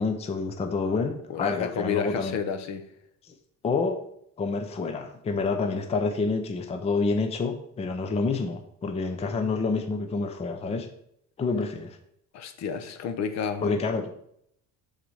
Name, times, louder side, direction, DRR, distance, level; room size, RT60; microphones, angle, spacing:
voice 1, 0.0-2.4 3.3-3.4 3.6-4.0 4.4-10.9 11.4-12.0 13.6-14.1, left 4 dB, 20° left, 7 dB, 0.5 m, -28 dB
voice 2, 1.3-2.8 9.4-9.7 12.3-13.8, left 7 dB, 50° left, 9 dB, 0.8 m, -31 dB
6.1 x 4.1 x 6.2 m, 0.71 s
cardioid pair, 165°, 34 cm